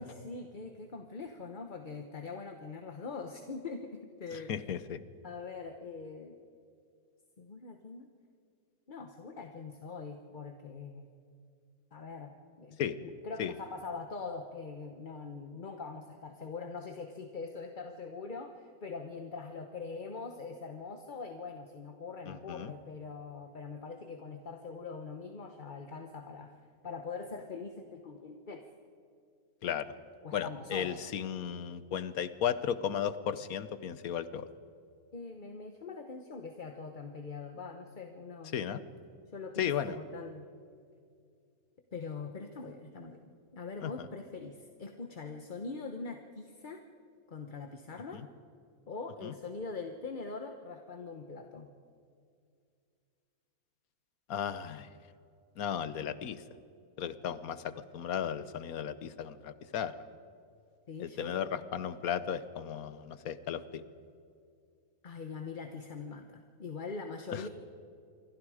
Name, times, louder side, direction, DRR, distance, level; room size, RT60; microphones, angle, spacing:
voice 1, 0.0-4.7 5.2-6.4 7.4-8.1 8.9-11.0 11.9-26.6 26.8-28.7 30.2-31.0 35.1-38.9 39.3-40.5 41.9-43.2 43.5-46.8 47.3-48.2 48.9-51.7 60.9-61.4 65.0-67.5, left 4 dB, 35° left, 5 dB, 1.1 m, -43 dB
voice 2, 4.5-5.0 12.8-13.0 13.4-13.5 22.3-22.7 29.6-29.9 30.3-34.5 38.5-38.8 39.6-40.0 43.8-43.9 48.1-48.3 49.2-49.3 54.3-54.9 55.6-56.4 57.0-59.9 61.0-63.8 67.3-67.4, left 8 dB, 70° left, 14 dB, 1.4 m, -35 dB
27.5 x 23.5 x 5.0 m, 2.4 s
omnidirectional pair, 1.6 m